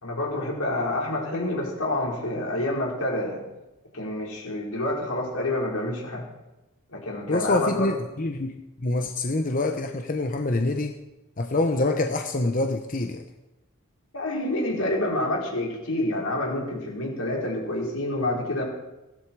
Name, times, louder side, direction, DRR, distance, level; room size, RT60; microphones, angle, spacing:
voice 1, 0.0-3.4 3.9-6.3 6.9-7.9 14.1-18.6, left 1 dB, 85° left, -3 dB, 5.2 m, -28 dB
voice 2, 7.3-10.9 11.4-13.3, left 2 dB, 40° left, 5 dB, 0.9 m, -26 dB
17.5 x 13.0 x 4.8 m, 1.0 s
head